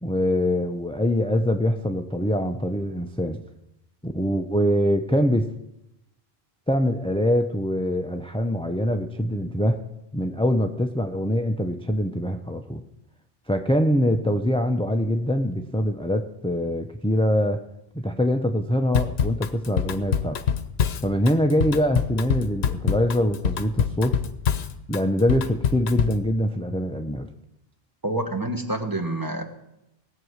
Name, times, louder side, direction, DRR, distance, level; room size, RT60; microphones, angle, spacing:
voice 1, 0.0-3.4 4.0-5.5 6.7-9.8 10.1-12.8 13.5-17.6 17.9-20.4 21.0-24.2 24.9-27.3, equal, 10° left, 6 dB, 0.4 m, -24 dB
Drum kit / Drum, 18.9-26.3, left 8 dB, 75° left, 1.0 m, -25 dB
voice 2, 28.0-29.4, right 1 dB, 20° right, 4 dB, 1.3 m, -27 dB
18.5 x 7.7 x 6.4 m, 0.88 s
omnidirectional pair, 1.1 m